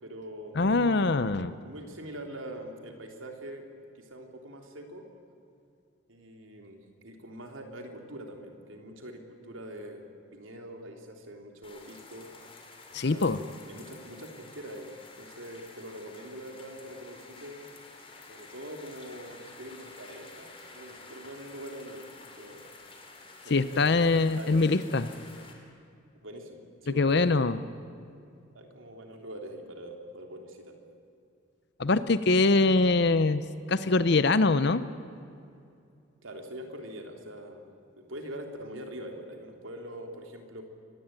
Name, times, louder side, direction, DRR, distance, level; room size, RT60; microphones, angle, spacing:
voice 1, 0.0-0.6 1.5-3.7 4.0-5.1 6.1-12.3 13.0-17.6 18.2-22.1 22.4-22.6 23.4-24.8 26.2-27.5 28.5-30.8 36.2-37.7 38.0-40.6, right 1 dB, 75° right, 4 dB, 3.3 m, -43 dB
voice 2, 0.6-1.5 12.9-13.4 23.5-25.1 27.0-27.6 31.8-33.4 33.7-34.8, left 3 dB, 55° left, 13 dB, 0.7 m, -23 dB
sound 1, 11.6-25.5, left 3 dB, 25° left, 3.2 m, -50 dB
25.0 x 19.5 x 9.0 m, 2.5 s
head